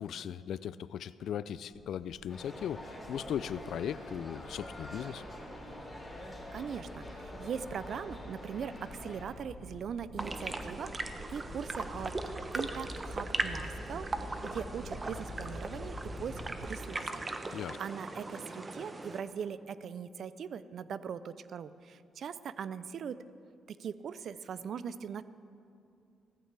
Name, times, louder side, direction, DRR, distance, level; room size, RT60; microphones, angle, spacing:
voice 1, 0.0-5.2 17.5-17.8, left 9 dB, 70° left, 17 dB, 0.3 m, -38 dB
sound 1, 1.7-16.7, left 1 dB, 55° left, 1.7 m, -47 dB
sound 2, 2.3-9.3, left 1 dB, 10° left, 3.7 m, -46 dB
voice 2, 6.5-10.9 11.3-12.1 12.5-15.9 16.2-23.2 23.7-25.2, right 7 dB, 60° right, 15 dB, 0.5 m, -40 dB
sound 3, 10.2-19.2, right 2 dB, 25° right, 0.9 m, -39 dB
16.0 x 14.5 x 3.4 m, 2.5 s
cardioid pair, 90°, 0 cm